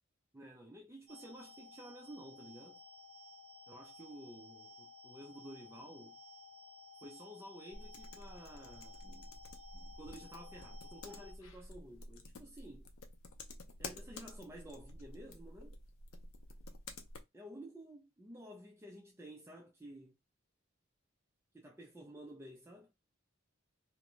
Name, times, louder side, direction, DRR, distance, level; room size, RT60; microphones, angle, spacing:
voice 1, 0.3-2.8 3.7-6.2 7.0-9.4 9.7-12.9 13.8-15.8 17.3-20.1 21.5-22.9, right 1 dB, 10° right, 0.3 m, -52 dB
sound 1, 1.1-11.3, left 3 dB, 80° right, 0.6 m, -56 dB
sound 2, 7.7-17.2, left 2 dB, 85° left, 0.5 m, -51 dB
2.5 x 2.1 x 3.0 m
head